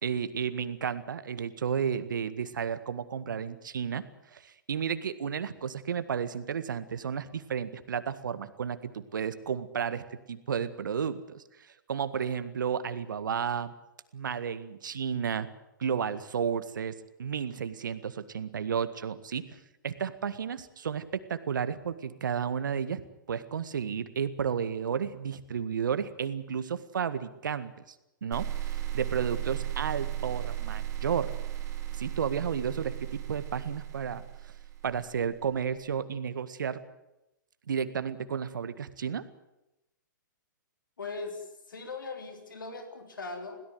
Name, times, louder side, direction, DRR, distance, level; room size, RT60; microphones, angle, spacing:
voice 1, 0.0-4.1 4.3-13.7 14.1-15.5 15.8-16.9 17.2-19.4 19.8-23.0 23.3-28.0 28.2-31.3 31.9-34.5 34.8-36.8 37.7-39.3, right 7 dB, 70° right, 12 dB, 1.8 m, -32 dB
sound 1, 28.3-35.4, right 12 dB, 30° right, 3.9 m, -35 dB
voice 2, 41.0-43.6, left 3 dB, 80° left, 5 dB, 3.7 m, -39 dB
22.0 x 17.0 x 9.6 m, 0.92 s
hypercardioid pair, 120°, 11 cm